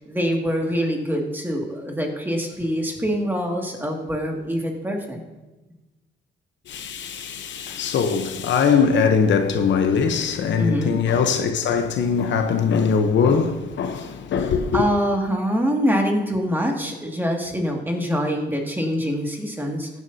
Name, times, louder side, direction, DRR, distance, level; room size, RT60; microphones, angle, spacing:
voice 1, 0.0-5.2 10.6-11.0 14.7-19.9, equal, 10° right, 2.2 m, -24 dB
voice 2, 6.7-14.8, left 6 dB, 70° left, 1.0 m, -21 dB
15.0 x 9.5 x 2.8 m
cardioid pair, 90°, 20 cm